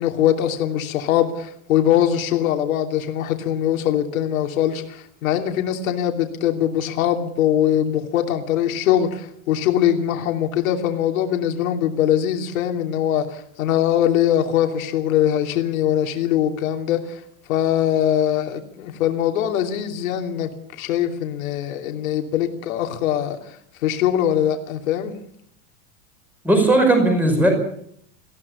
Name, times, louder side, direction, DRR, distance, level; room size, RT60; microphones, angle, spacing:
voice 1, 0.0-17.2 17.5-20.5 20.8-25.1, left 10 dB, 85° left, 4 dB, 3.0 m, -22 dB
voice 2, 26.4-27.5, right 2 dB, 5° right, 3 dB, 5.4 m, -16 dB
20.0 x 15.5 x 8.5 m, 0.67 s
supercardioid pair, 175°, 40 cm